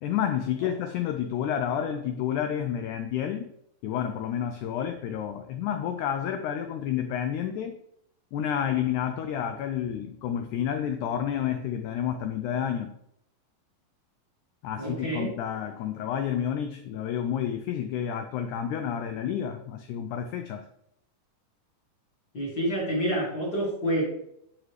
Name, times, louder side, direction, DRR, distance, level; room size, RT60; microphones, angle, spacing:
voice 1, 0.0-3.5 3.8-7.8 8.3-12.9 14.6-20.6, left 9 dB, 85° left, 1.7 m, -30 dB
voice 2, 14.8-15.3 22.3-24.1, right 1 dB, 35° left, 2.2 m, -28 dB
11.0 x 3.7 x 3.2 m
omnidirectional pair, 4.0 m